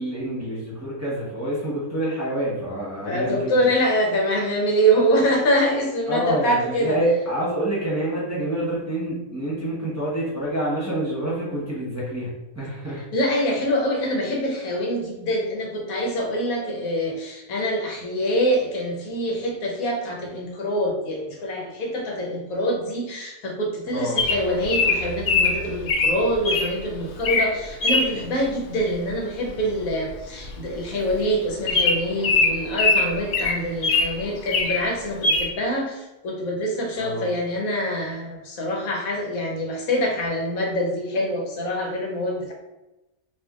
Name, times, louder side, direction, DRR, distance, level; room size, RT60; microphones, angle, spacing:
voice 1, 0.0-3.7 6.1-13.0 23.9-24.2 37.0-37.3, right 1 dB, 15° right, -8 dB, 0.9 m, -27 dB
voice 2, 3.0-7.0 13.1-42.5, equal, 85° left, -1 dB, 1.3 m, -25 dB
Bird vocalization bird call bird song, 24.2-26.7 27.1-27.5 27.8-28.1 29.6-29.8 30.1-30.2 30.4-30.6 31.1-31.2 31.7-34.1 34.4-34.8 35.2-35.5, left 3 dB, 65° left, 0.8 m, -21 dB
4.3 x 2.6 x 2.4 m, 0.98 s
omnidirectional pair, 1.5 m